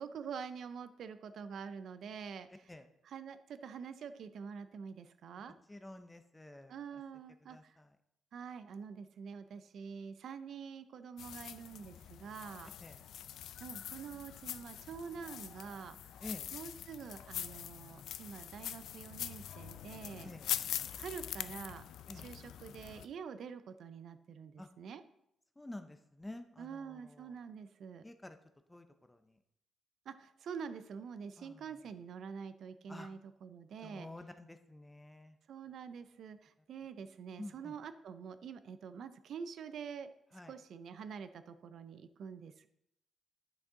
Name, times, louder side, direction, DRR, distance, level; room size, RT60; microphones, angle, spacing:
voice 1, 0.0-2.7 3.0-5.5 6.7-7.8 8.3-12.7 13.6-16.2 16.5-20.3 21.0-21.8 22.2-25.0 26.6-28.0 30.1-34.1 35.5-40.1 40.5-42.7, right 6 dB, 55° right, 12 dB, 0.4 m, -46 dB
voice 2, 5.7-6.7 7.5-7.9 12.8-13.0 16.2-16.5 20.2-20.5 22.1-22.3 24.6-24.7 25.6-27.4 28.0-28.4 28.7-29.4 31.4-31.6 32.9-33.1 33.8-35.4 37.4-37.7 40.3-40.6, left 2 dB, 10° left, 8 dB, 0.4 m, -49 dB
sound 1, 11.2-23.1, left 10 dB, 80° left, 0.4 m, -44 dB
10.5 x 6.2 x 3.6 m, 0.81 s
cardioid pair, 175°, 0 cm